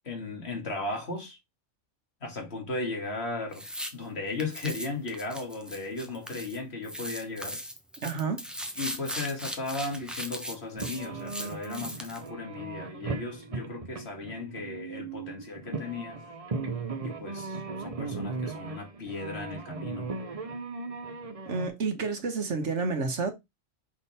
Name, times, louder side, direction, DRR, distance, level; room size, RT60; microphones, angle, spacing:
voice 1, 0.0-1.4 2.2-3.7 3.9-7.6 8.8-16.2 17.0-20.2, left 3 dB, 60° left, 2.0 m, -36 dB
sound 1, 3.5-3.9 4.4-6.6 6.8-12.3, equal, ahead, 0.8 m, -38 dB
voice 2, 8.0-8.4 21.5-23.3, right 4 dB, 75° right, 1.5 m, -30 dB
sound 2, 10.7-21.7, right 4 dB, 35° right, 0.8 m, -37 dB
6.1 x 3.7 x 4.1 m
omnidirectional pair, 1.2 m